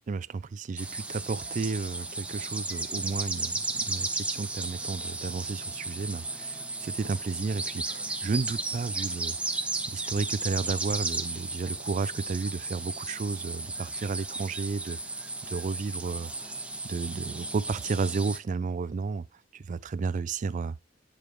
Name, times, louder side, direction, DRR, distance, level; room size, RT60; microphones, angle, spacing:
voice 1, 0.1-9.4 9.9-16.5 16.8-19.3 19.5-20.8, right 4 dB, 40° right, 0.4 m, -32 dB
sound 1, 0.8-18.4, right 2 dB, 5° right, 0.7 m, -34 dB
8.8 x 4.5 x 3.3 m
head